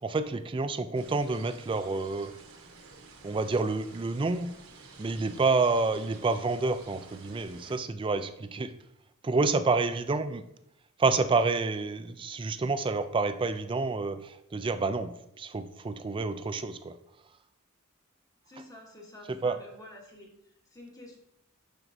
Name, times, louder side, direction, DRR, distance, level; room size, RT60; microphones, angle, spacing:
voice 1, 0.0-2.3 3.2-4.5 5.0-8.8 9.2-10.5 11.0-17.0 18.6-18.7 19.3-19.6, right 3 dB, 25° right, 10 dB, 0.3 m, -29 dB
sound 1, 0.9-7.8, right 4 dB, 70° right, 1.1 m, -51 dB
voice 2, 18.5-21.2, left 1 dB, 15° left, 0 dB, 1.2 m, -49 dB
11.5 x 4.5 x 2.6 m, 0.81 s
head